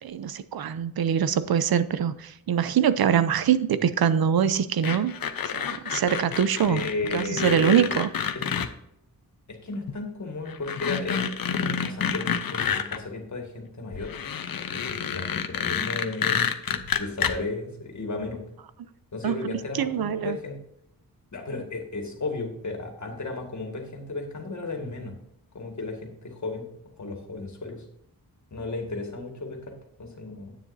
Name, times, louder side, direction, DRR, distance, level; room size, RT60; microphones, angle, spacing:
voice 1, 0.0-5.1 5.5-6.8 7.1-8.1 19.2-20.4, right 8 dB, 85° right, 14 dB, 0.6 m, -24 dB
sound 1, 4.8-8.7 9.9-10.0 10.5-13.0 13.9-17.3, left 7 dB, 70° left, 0.8 m, -28 dB
voice 2, 6.6-8.0 8.3-8.4 9.5-14.1 14.7-18.4 19.1-20.6 21.3-25.1 25.5-26.7 27.0-27.8 28.5-30.6, left 3 dB, 50° left, 3 dB, 2.0 m, -34 dB
10.0 x 8.9 x 2.7 m, 0.77 s
wide cardioid pair, 175°, 36 cm